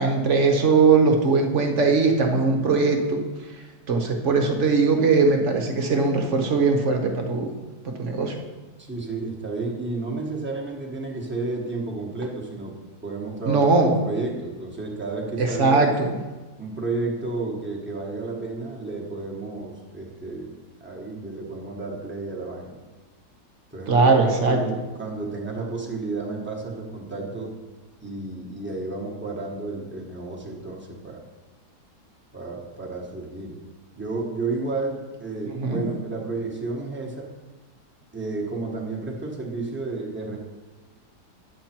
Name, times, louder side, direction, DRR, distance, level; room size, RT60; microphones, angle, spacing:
voice 1, 0.0-3.2 3.9-7.5 7.8-8.4 13.5-13.9 15.4-16.1 23.9-24.6 35.6-35.8, right 4 dB, 50° right, 4 dB, 1.1 m, -20 dB
voice 2, 8.8-15.9 16.6-22.8 23.7-27.5 28.0-31.2 32.3-33.6 34.0-37.3 38.1-40.4, right 3 dB, 10° right, -2 dB, 1.1 m, -32 dB
9.6 x 7.2 x 4.4 m, 1.2 s
omnidirectional pair, 1.8 m